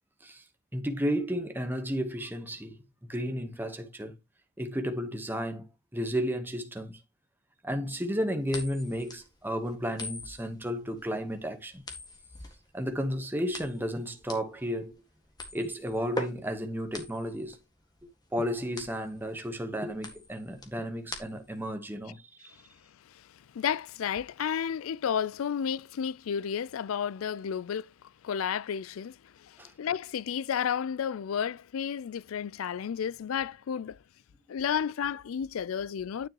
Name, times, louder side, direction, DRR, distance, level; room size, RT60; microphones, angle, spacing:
voice 1, 0.7-4.2 4.6-5.7 5.9-7.0 7.6-11.8 12.7-15.0 15.5-17.6 18.3-22.6 29.6-29.7, equal, 10° right, 1.1 m, -33 dB
sound 1, 8.5-21.7, left 2 dB, 20° left, 1.7 m, -43 dB
voice 2, 23.5-27.9 28.2-34.0 34.5-36.3, left 8 dB, 85° left, 0.4 m, -32 dB
9.7 x 6.0 x 2.9 m
head